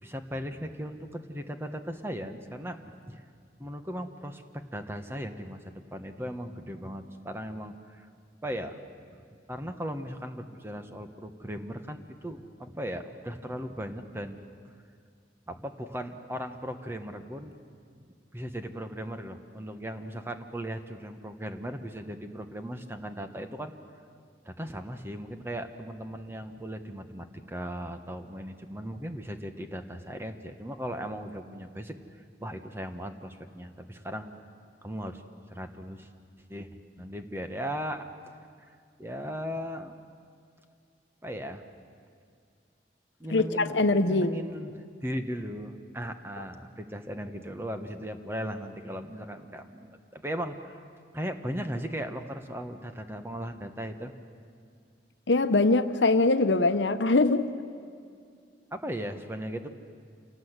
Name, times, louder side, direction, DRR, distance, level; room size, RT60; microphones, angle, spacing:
voice 1, 0.0-3.2 3.6-8.1 8.4-8.7 9.1-9.2 9.5-14.4 15.5-17.6 17.9-18.1 18.3-23.7 24.4-32.0 32.4-34.3 34.8-35.2 35.5-36.1 36.5-36.7 37.0-38.1 38.7-40.0 41.2-41.6 43.2-50.8 51.1-54.1 58.7-59.7, equal, 15° right, 7 dB, 1.2 m, -37 dB
voice 2, 43.3-44.4 55.3-57.5, left 2 dB, 85° left, 10 dB, 0.9 m, -23 dB
27.5 x 18.5 x 8.1 m, 2.2 s
head